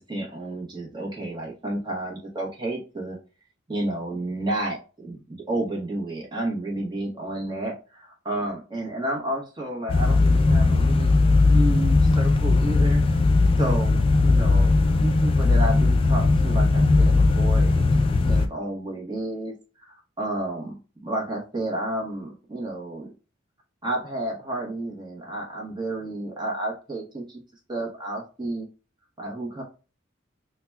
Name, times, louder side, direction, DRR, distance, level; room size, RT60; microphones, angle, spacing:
voice 1, 0.0-3.2 3.7-13.0 13.6-17.9 18.2-19.5 19.8-20.7 21.0-23.1 23.8-27.4 27.7-28.7 29.2-29.6, right 1 dB, 20° right, -1 dB, 0.9 m, -31 dB
sound 1, 9.9-18.5, left 3 dB, 30° left, 0.3 m, -19 dB
5.7 x 2.1 x 2.2 m, 0.34 s
head